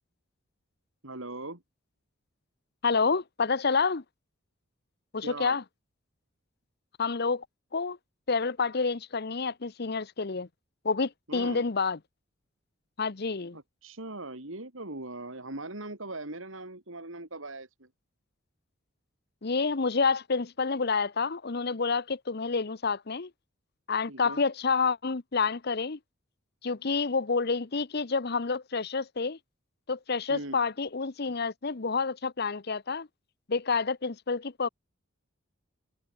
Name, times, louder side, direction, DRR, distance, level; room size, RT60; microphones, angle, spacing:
voice 1, 1.0-1.6 5.2-5.6 11.3-11.6 13.5-17.9 24.1-24.4 30.3-30.6, right 2 dB, 75° right, 4.0 m, -40 dB
voice 2, 2.8-4.0 5.1-5.6 7.0-7.4 7.7-8.0 8.3-10.5 10.8-12.0 13.0-13.6 19.4-23.3 23.9-26.0 26.6-29.4 29.9-33.1 33.5-34.7, left 4 dB, 50° left, 0.9 m, -28 dB
head